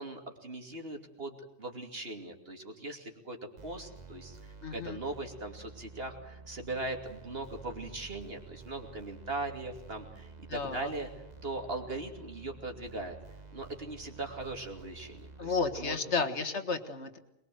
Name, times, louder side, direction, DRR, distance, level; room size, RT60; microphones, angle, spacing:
voice 1, 0.0-11.1 11.4-13.2 13.5-16.2, right 2 dB, 55° right, 4 dB, 3.0 m, -40 dB
sound 1, 3.6-16.0, right 4 dB, 35° right, 1.6 m, -50 dB
voice 2, 4.6-5.0 10.5-10.9 15.4-17.2, left 4 dB, 70° left, 8 dB, 2.0 m, -32 dB
22.0 x 21.5 x 7.8 m, 0.87 s
omnidirectional pair, 1.2 m